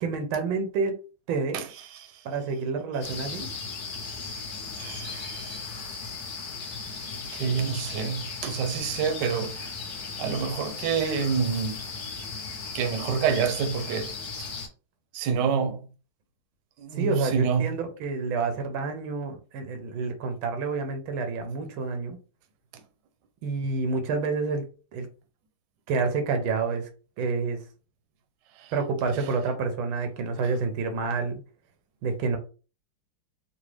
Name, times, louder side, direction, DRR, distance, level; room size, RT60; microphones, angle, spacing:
voice 1, 0.0-1.0 1.3-1.6 2.2-3.5 17.0-22.2 23.4-24.6 24.9-25.1 25.9-26.9 27.2-27.6 28.7-31.4 32.0-32.4, right 4 dB, 85° right, 1.6 m, -28 dB
voice 2, 1.5-2.2 4.8-5.7 7.3-9.7 10.2-11.8 12.7-14.5 15.1-15.8 16.8-17.7 28.6-28.7 29.2-29.3, right 6 dB, 70° right, 1.2 m, -28 dB
sound 1, 3.0-14.7, left 4 dB, 60° left, 1.2 m, -37 dB
4.0 x 2.2 x 3.1 m
omnidirectional pair, 2.3 m